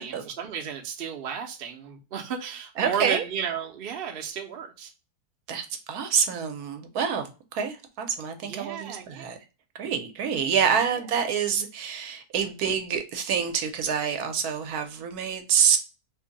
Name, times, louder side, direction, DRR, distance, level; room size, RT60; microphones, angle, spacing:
voice 1, 0.0-4.9 8.4-9.4, right 7 dB, 55° right, 0.7 m, -33 dB
voice 2, 2.8-3.2 5.5-9.4 9.7-15.8, right 7 dB, 75° right, 1.1 m, -27 dB
2.8 x 2.7 x 3.7 m
omnidirectional pair, 1.7 m